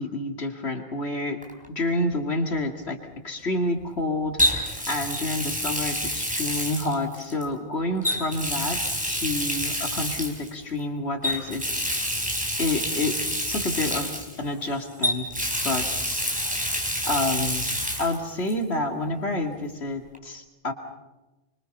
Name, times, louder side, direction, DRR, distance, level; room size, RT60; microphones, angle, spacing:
voice 1, 0.0-1.4 1.7-3.0 3.2-11.9 12.6-13.2 13.5-16.2 17.0-17.7 18.0-20.7, left 2 dB, 70° left, 3 dB, 2.8 m, -29 dB
Water tap faucet, 1.4-1.7 4.4-7.4 8.0-10.5 11.2-14.7 15.0-18.2 18.5-18.6 20.1-20.2, equal, 5° right, 4.2 m, -28 dB
25.5 x 25.5 x 5.6 m, 1.1 s
omnidirectional pair, 1.1 m